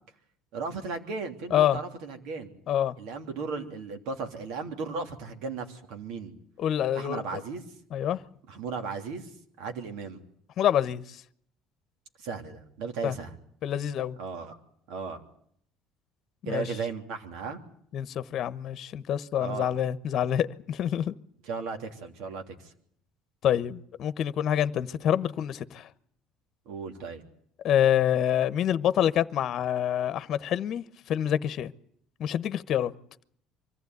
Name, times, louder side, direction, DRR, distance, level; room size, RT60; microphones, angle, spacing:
voice 1, 0.5-2.5 3.0-6.3 6.9-7.6 8.5-9.3 9.6-10.2 12.2-13.3 14.2-14.6 14.9-15.2 16.4-17.6 19.4-19.7 21.4-22.7 26.6-27.2, right 4 dB, 75° right, 3.1 m, -36 dB
voice 2, 6.6-7.2 7.9-8.2 10.6-11.0 13.0-13.1 13.6-14.2 16.4-16.6 17.9-21.1 23.4-25.9 27.6-31.7 32.2-32.9, left 10 dB, 55° left, 1.0 m, -26 dB
24.5 x 15.0 x 9.5 m
supercardioid pair, 80°, 0 cm